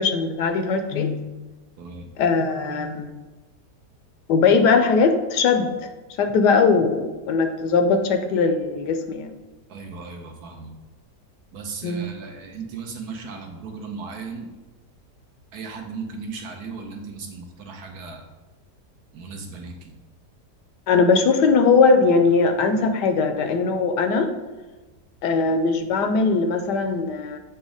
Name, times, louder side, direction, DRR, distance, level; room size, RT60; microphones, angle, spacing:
voice 1, 0.0-1.3 2.2-3.1 4.3-5.7 6.2-9.3 11.8-12.0 20.9-24.3 25.2-27.4, left 4 dB, 75° left, 7 dB, 1.2 m, -20 dB
voice 2, 1.8-2.1 9.7-10.8 11.5-14.5 15.5-18.3 19.1-19.9, right 4 dB, 70° right, 3 dB, 1.2 m, -36 dB
7.3 x 3.0 x 4.9 m, 1.2 s
omnidirectional pair, 1.8 m